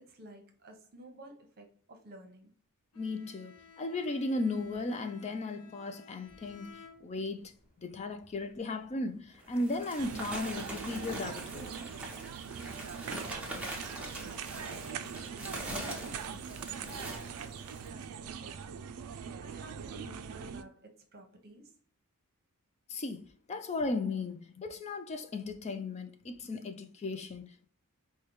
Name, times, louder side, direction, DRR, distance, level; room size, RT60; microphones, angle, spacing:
voice 1, 0.1-2.5 12.7-13.7 14.0-18.8 19.4-21.8, right 1 dB, 45° right, 0.9 m, -54 dB
Bowed string instrument, 2.9-7.5, left 5 dB, 90° left, 0.7 m, -56 dB
voice 2, 3.0-7.5 7.8-11.8 22.9-27.7, left 2 dB, 30° left, 0.4 m, -36 dB
sound 1, 8.6-8.7 9.3-18.0, right 1 dB, 5° right, 0.8 m, -43 dB
sound 2, 10.0-20.6, right 7 dB, 75° right, 0.4 m, -42 dB
4.9 x 2.2 x 3.0 m
head